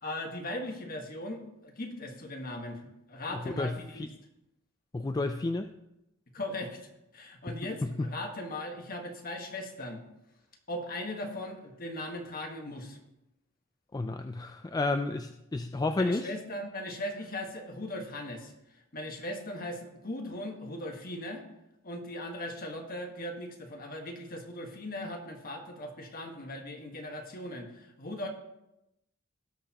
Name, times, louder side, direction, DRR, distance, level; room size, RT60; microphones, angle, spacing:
voice 1, 0.0-4.1 6.3-10.0 10.7-13.0 16.0-21.4 21.8-28.3, left 1 dB, 45° left, 3 dB, 1.5 m, -39 dB
voice 2, 3.6-4.1 4.9-5.7 13.9-16.3, left 2 dB, 20° left, 7 dB, 0.3 m, -31 dB
18.0 x 6.6 x 2.9 m, 0.90 s
head